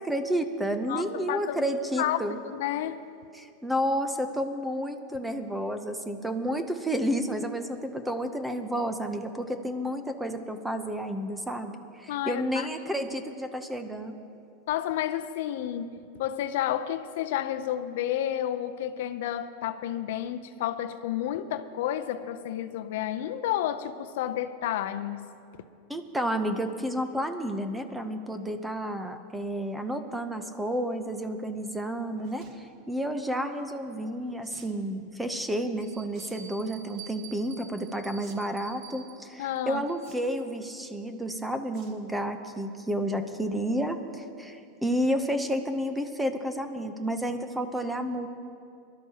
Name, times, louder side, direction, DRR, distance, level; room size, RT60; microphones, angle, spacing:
voice 1, 0.0-2.4 3.3-14.2 25.9-48.3, equal, 5° right, 8 dB, 0.7 m, -31 dB
voice 2, 1.3-2.2 2.4-3.0 12.1-12.7 12.9-13.1 14.7-25.4 39.4-39.9, left 11 dB, 65° left, 10 dB, 0.5 m, -31 dB
sound 1, 32.2-32.6 34.4-34.8 36.1-36.4 36.7-37.1 38.2-38.3 38.6-38.7 40.0-40.5 41.7-42.0 42.4-42.6 43.0-43.1 43.3-43.4, right 6 dB, 45° right, 1.3 m, -54 dB
Bell, 34.2-34.3 35.0-35.1 35.8-40.4, right 7 dB, 75° right, 1.6 m, -49 dB
23.0 x 12.0 x 2.9 m, 2.5 s
supercardioid pair, 155°, 0 cm